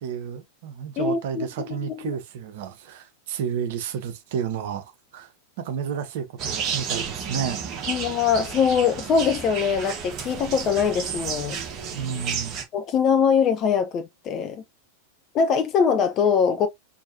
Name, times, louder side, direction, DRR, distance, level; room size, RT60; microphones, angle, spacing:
voice 1, 0.0-5.3 5.6-8.0 11.9-12.6, right 7 dB, 55° right, 1.0 m, -31 dB
voice 2, 1.0-2.1 7.9-11.6 12.7-14.6 15.3-16.7, left 6 dB, 35° left, 0.5 m, -22 dB
sound 1, 6.4-12.6, right 6 dB, 35° right, 1.3 m, -32 dB
4.5 x 2.8 x 2.7 m
figure-of-eight pair, 90°, 0 cm